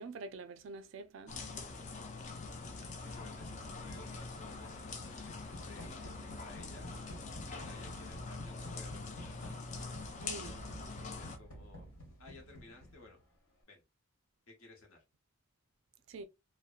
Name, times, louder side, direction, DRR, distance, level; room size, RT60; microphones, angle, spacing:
voice 1, 0.0-1.4 10.2-10.6 16.1-16.3, right 3 dB, 60° right, 0.3 m, -46 dB
sound 1, 1.3-11.4, left 3 dB, 35° left, 0.4 m, -44 dB
sound 2, 2.4-13.2, equal, 85° left, 1.3 m, -52 dB
voice 2, 2.9-6.9 7.5-9.9 11.2-11.9 12.2-13.2 13.7-13.8 14.5-15.0, left 2 dB, 70° left, 1.0 m, -57 dB
2.7 x 2.1 x 2.4 m
head